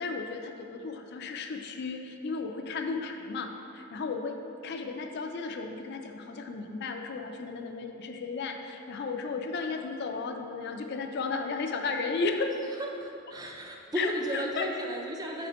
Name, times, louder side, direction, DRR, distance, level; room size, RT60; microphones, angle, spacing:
voice 1, 0.0-4.4 4.6-12.5 14.0-14.7, left 4 dB, 55° left, 5 dB, 0.4 m, -34 dB
voice 2, 12.8-15.5, equal, 20° right, 1 dB, 0.5 m, -34 dB
6.6 x 5.0 x 2.9 m, 2.6 s
head